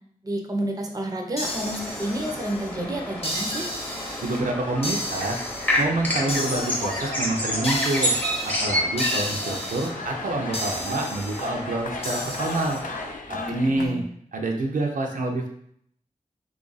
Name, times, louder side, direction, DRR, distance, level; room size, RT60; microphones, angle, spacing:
voice 1, 0.2-3.7 13.3-14.0, right 1 dB, 25° right, 2 dB, 0.5 m, -30 dB
sound 1, 1.4-2.7 3.2-4.4 4.8-5.8 6.3-7.1 7.6-8.5 9.0-9.9 10.5-11.5 12.0-12.8, left 1 dB, 45° left, 0.9 m, -33 dB
sound 2, 1.4-13.1, equal, 10° left, 0.8 m, -30 dB
sound 3, 1.5-13.9, left 3 dB, 75° left, 0.4 m, -38 dB
voice 2, 4.2-5.4 5.8-8.1 8.4-12.8 13.3-14.0 14.3-15.5, right 2 dB, 70° right, 1 dB, 0.5 m, -27 dB
3.2 x 2.4 x 3.9 m, 0.67 s
wide cardioid pair, 100°, 14 cm